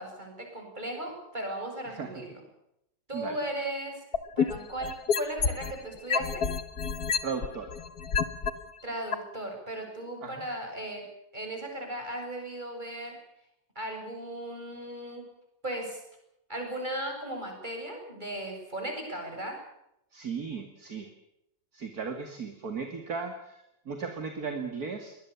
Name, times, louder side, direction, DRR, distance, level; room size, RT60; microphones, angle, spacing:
voice 1, 0.0-2.3 3.1-4.0 4.4-6.5 8.8-11.0 11.3-13.2 13.7-15.3 15.6-16.0 16.5-19.6, right 1 dB, 25° right, 2 dB, 8.1 m, -36 dB
sound 1, 4.1-5.7 6.1-8.5 9.1-9.2, left 6 dB, 55° left, 2.0 m, -27 dB
voice 2, 7.2-7.7 10.2-10.4 20.1-21.1 21.7-25.2, right 5 dB, 50° right, 6 dB, 2.8 m, -36 dB
23.5 x 20.0 x 7.1 m, 0.80 s
omnidirectional pair, 2.0 m